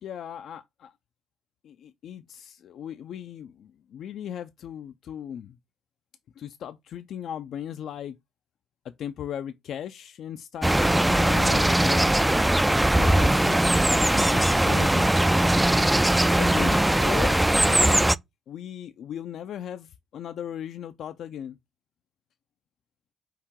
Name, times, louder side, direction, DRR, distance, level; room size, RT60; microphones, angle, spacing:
voice 1, 0.0-0.9 1.6-5.6 6.4-8.2 8.8-12.1 12.9-15.2 16.4-18.1 18.5-21.6, left 9 dB, 70° left, 0.3 m, -37 dB
sound 1, 10.6-18.2, right 1 dB, 10° right, 0.3 m, -20 dB
4.7 x 2.8 x 3.5 m
supercardioid pair, 60°, 0 cm